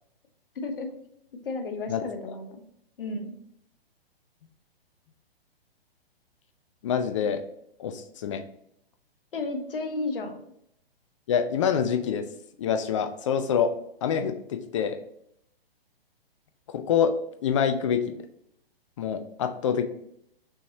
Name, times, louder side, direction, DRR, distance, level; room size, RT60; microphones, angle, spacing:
voice 1, 0.5-0.9 1.4-2.6 3.0-3.3 9.3-10.4, left 3 dB, 60° left, 5 dB, 1.0 m, -32 dB
voice 2, 6.8-7.4 7.8-8.4 11.3-12.2 12.6-13.7 14.0-15.0 16.7-17.1 17.4-18.0 19.0-19.9, left 7 dB, 30° left, 8 dB, 0.4 m, -26 dB
6.2 x 3.1 x 2.8 m, 0.72 s
figure-of-eight pair, 120°, 30 cm